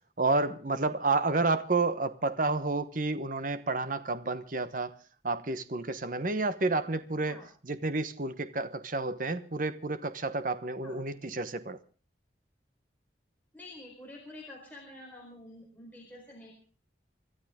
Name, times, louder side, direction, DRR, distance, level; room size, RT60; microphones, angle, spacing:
voice 1, 0.2-5.0 5.2-7.4 7.6-11.8, right 3 dB, 50° right, 1.1 m, -30 dB
voice 2, 13.5-16.5, left 1 dB, 10° left, 4.4 m, -48 dB
25.0 x 12.5 x 3.7 m
head